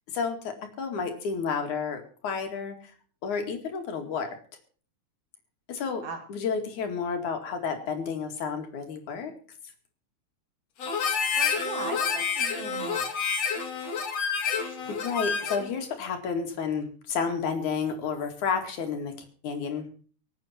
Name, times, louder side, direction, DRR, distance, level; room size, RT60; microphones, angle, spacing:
voice 1, 0.1-2.9 3.2-4.3 5.7-6.0 6.3-9.3 14.9-19.2 19.4-19.9, left 5 dB, 80° left, 5 dB, 3.7 m, -31 dB
Harmonica, 10.8-15.7, left 6 dB, 60° left, 2.9 m, -29 dB
voice 2, 11.3-13.1, right 5 dB, 70° right, 6 dB, 3.6 m, -38 dB
24.5 x 8.8 x 4.4 m, 0.41 s
omnidirectional pair, 3.4 m